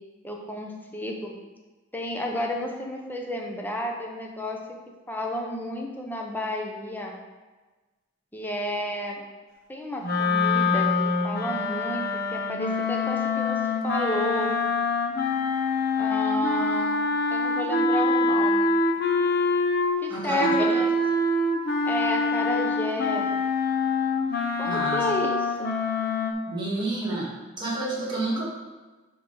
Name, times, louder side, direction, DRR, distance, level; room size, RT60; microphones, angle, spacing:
voice 1, 0.2-1.3 1.9-4.6 5.1-7.1 8.3-9.2 9.7-10.9 11.2-13.6 13.8-14.5 16.0-17.0 17.3-18.7 20.0-20.9 21.8-23.3 24.6-25.7, left 1 dB, 10° left, 0 dB, 0.8 m, -31 dB
sound 1, 10.0-20.0 20.4-26.3, left 3 dB, 55° left, 0.9 m, -25 dB
voice 2, 20.1-20.7 24.7-25.0 26.5-27.3 27.6-28.5, right 1 dB, 25° right, -5 dB, 2.0 m, -29 dB
10.0 x 3.7 x 4.8 m, 1.3 s
head